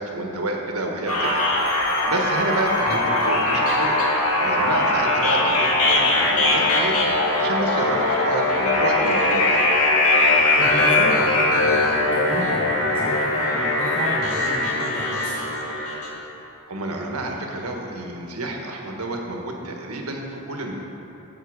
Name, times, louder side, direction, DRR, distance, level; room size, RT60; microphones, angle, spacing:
voice 1, 0.0-1.4 1.7-4.0 4.4-6.9 7.4-9.6 16.7-20.7, right 2 dB, 80° right, 1 dB, 1.4 m, -29 dB
sound 1, 1.1-16.1, left 2 dB, 75° left, 1.9 m, -20 dB
voice 2, 10.6-15.5, left 1 dB, 25° left, -6 dB, 1.4 m, -32 dB
13.0 x 7.3 x 5.0 m, 3.0 s
head